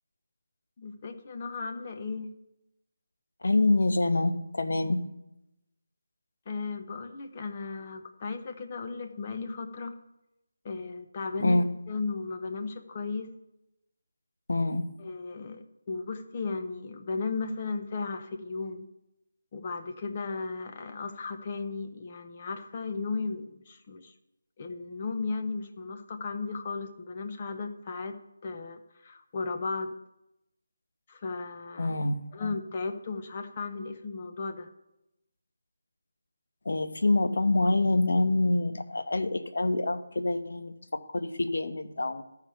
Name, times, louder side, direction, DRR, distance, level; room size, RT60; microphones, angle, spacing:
voice 1, 0.8-2.3 6.5-9.9 10.6-13.3 15.0-18.9 19.5-24.1 24.6-29.9 31.1-32.0 32.3-34.7, left 4 dB, 25° left, 6 dB, 0.7 m, -35 dB
voice 2, 3.4-5.0 11.4-11.6 14.5-14.9 31.8-32.2 36.6-42.2, left 2 dB, 70° left, 9 dB, 1.0 m, -26 dB
13.0 x 4.8 x 6.8 m, 0.89 s
figure-of-eight pair, 170°, 0 cm